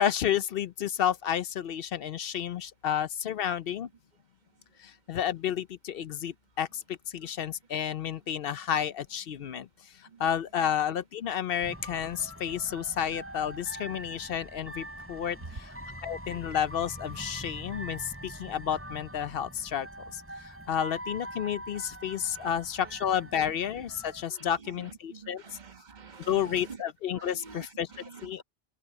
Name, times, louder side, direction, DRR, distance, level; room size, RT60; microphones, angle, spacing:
voice 1, 0.0-3.9 4.8-9.7 10.0-15.8 16.0-19.9 20.1-25.4 26.3-27.9 28.2-28.4, left 9 dB, 65° left, 0.8 m, -31 dB
sound 1, 11.6-24.2, right 1 dB, 10° right, 4.1 m, -43 dB
voice 2, 22.1-22.9 23.4-23.5 24.3-26.8 27.1-28.4, right 5 dB, 45° right, 1.6 m, -49 dB
open air
omnidirectional pair, 1.1 m